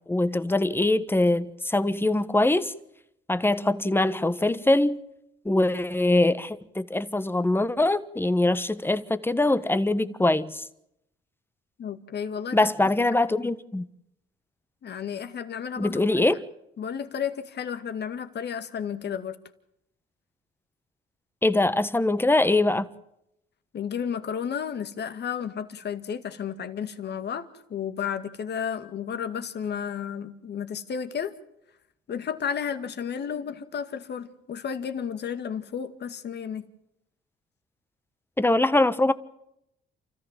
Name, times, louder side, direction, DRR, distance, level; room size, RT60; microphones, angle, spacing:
voice 1, 0.1-2.7 3.3-5.0 5.4-10.6 12.5-13.9 15.8-16.4 21.4-22.9 38.4-39.1, left 2 dB, 10° left, 1.3 m, -23 dB
voice 2, 11.8-12.7 13.3-13.5 14.8-16.0 16.8-19.4 23.7-31.3 32.1-36.7, left 7 dB, 55° left, 2.1 m, -32 dB
29.0 x 14.5 x 7.6 m
cardioid pair, 90°, 20 cm